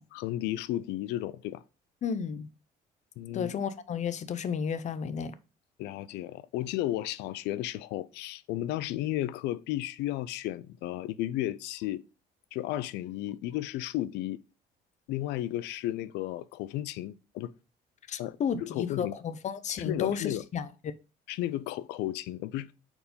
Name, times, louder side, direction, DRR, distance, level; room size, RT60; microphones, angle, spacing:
voice 1, 0.1-1.6 3.2-3.5 5.8-12.0 12.5-14.4 15.1-17.5 18.2-19.1 19.8-20.4 21.3-22.7, left 14 dB, 85° left, 0.4 m, -33 dB
voice 2, 2.0-2.5 3.3-5.3 18.1-20.7, left 7 dB, 45° left, 0.6 m, -32 dB
4.5 x 4.2 x 5.2 m
cardioid pair, 110°, 17 cm